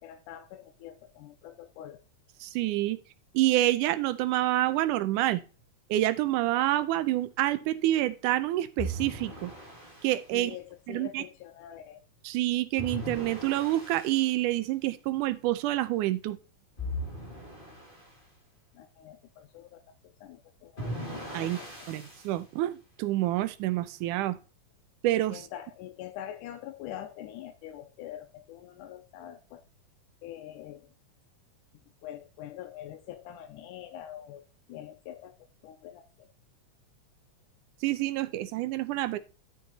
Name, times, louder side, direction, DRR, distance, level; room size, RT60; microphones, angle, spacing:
voice 1, 0.0-2.0 10.3-12.0 18.7-21.0 21.4-21.7 25.3-29.6 30.2-30.9 32.0-35.3 35.6-36.3, left 11 dB, 90° left, 2.2 m, -44 dB
voice 2, 2.4-3.0 3.3-5.4 5.9-9.5 10.0-10.6 10.9-11.2 12.2-16.4 21.3-21.6 21.9-24.4 25.0-25.5 37.8-39.2, right 15 dB, 85° right, 2.2 m, -27 dB
sound 1, 8.8-10.2 12.8-14.3 16.8-18.1 20.8-22.3, equal, 20° left, 1.6 m, -38 dB
12.0 x 5.7 x 4.1 m
omnidirectional pair, 3.6 m